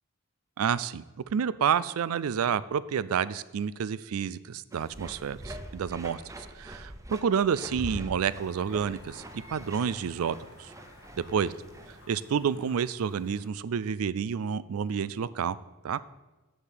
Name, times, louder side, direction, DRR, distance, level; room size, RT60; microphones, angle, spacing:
voice 1, 0.6-1.0 1.3-9.2 9.5-10.7 11.3-11.5 12.1-15.6 15.8-16.0, right 7 dB, 80° right, 18 dB, 0.4 m, -29 dB
sound 1, 4.7-12.0, right 1 dB, 15° right, 0.7 m, -44 dB
sound 2, 8.3-13.5, left 1 dB, 70° left, 1.8 m, -54 dB
6.8 x 6.7 x 7.4 m, 1.1 s
head